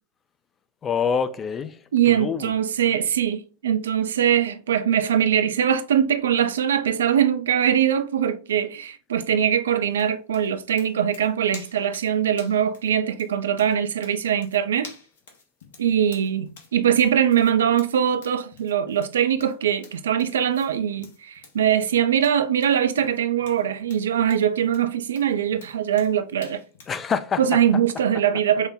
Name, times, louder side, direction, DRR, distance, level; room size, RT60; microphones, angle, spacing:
voice 1, 0.8-2.5 26.9-27.4, left 6 dB, 20° left, 0.3 m, -26 dB
voice 2, 1.9-14.9 15.8-26.6 27.4-28.7, right 9 dB, 65° right, 0.3 m, -22 dB
sound 1, 9.9-27.0, left 4 dB, 60° left, 0.8 m, -49 dB
3.1 x 2.1 x 3.4 m
figure-of-eight pair, 90°, 0 cm